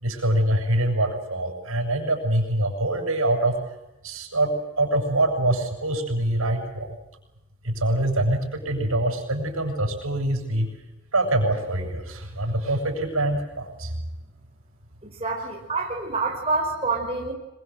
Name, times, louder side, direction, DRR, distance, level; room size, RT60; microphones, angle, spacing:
voice 1, 0.0-3.5 4.0-6.9 7.6-10.7 11.1-13.9, right 1 dB, 85° right, 3 dB, 7.7 m, -24 dB
voice 2, 15.2-17.3, right 3 dB, 30° right, 0 dB, 5.0 m, -27 dB
26.5 x 23.5 x 7.9 m, 1.0 s
head